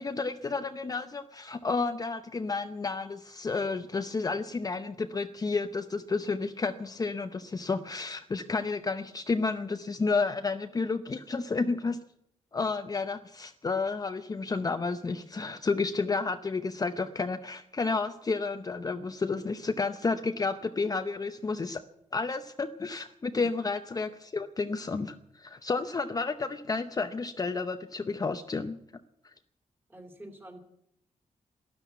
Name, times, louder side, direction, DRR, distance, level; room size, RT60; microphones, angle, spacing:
voice 1, 0.0-12.0 12.5-21.8 22.1-28.8, left 4 dB, 30° left, 8 dB, 0.7 m, -31 dB
voice 2, 29.9-30.6, right 1 dB, 15° right, 5 dB, 2.8 m, -46 dB
13.0 x 12.0 x 9.3 m, 0.76 s
wide cardioid pair, 130°, 13 cm